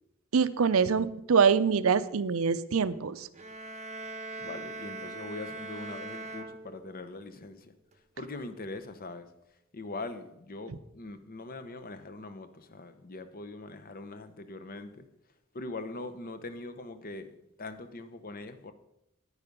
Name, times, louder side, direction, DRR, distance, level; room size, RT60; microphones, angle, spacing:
voice 1, 0.3-3.3, right 6 dB, 75° right, 14 dB, 0.6 m, -24 dB
sound 1, 3.3-7.2, right 2 dB, 35° right, 0.8 m, -41 dB
voice 2, 4.4-7.7 8.2-9.3 9.7-15.1 15.5-18.7, left 2 dB, 45° left, 10 dB, 0.9 m, -42 dB
10.0 x 9.8 x 5.3 m, 0.82 s
head